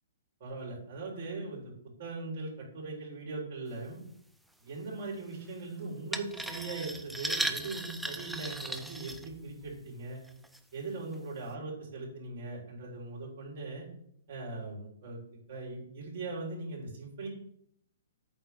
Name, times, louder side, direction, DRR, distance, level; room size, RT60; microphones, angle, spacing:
voice 1, 0.4-1.7 2.0-4.0 4.6-10.2 10.7-13.9 14.3-15.2 15.5-17.3, right 3 dB, 50° right, -3 dB, 3.8 m, -40 dB
sound 1, 6.1-9.7 10.3-10.6 11.1-11.2, right 1 dB, ahead, 0.5 m, -36 dB
8.5 x 3.8 x 6.9 m, 0.70 s
hypercardioid pair, 145°, 0 cm